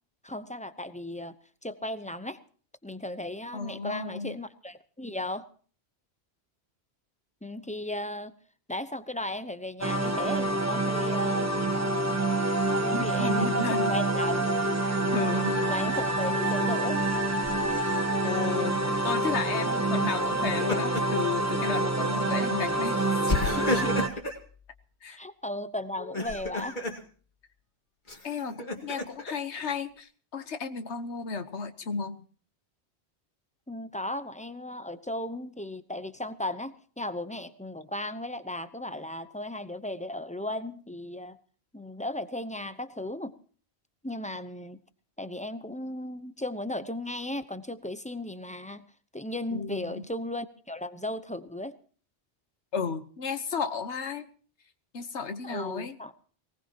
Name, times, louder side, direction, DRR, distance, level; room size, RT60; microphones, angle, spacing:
voice 1, 0.2-1.4 1.6-2.4 2.8-5.5 7.4-8.3 8.7-11.5 12.8-14.5 15.7-17.0 25.2-26.8 33.7-41.4 41.7-43.4 44.0-44.8 45.2-48.9 49.1-51.7 55.4-56.1, left 1 dB, 10° left, 11 dB, 0.7 m, -36 dB
voice 2, 3.5-4.4 12.9-14.0 14.9-15.6 18.2-24.0 25.0-25.2 28.2-32.2 49.5-50.1 52.7-54.3 54.9-56.0, left 5 dB, 85° left, 9 dB, 1.4 m, -33 dB
sound 1, 9.8-24.1, right 2 dB, 15° right, 1.1 m, -27 dB
Laughter, 17.4-18.0 20.3-21.2 21.6-21.8 23.3-24.4 26.0-27.0 28.1-29.3, left 2 dB, 45° left, 2.4 m, -32 dB
22.5 x 18.5 x 2.9 m, 0.43 s
omnidirectional pair, 1.1 m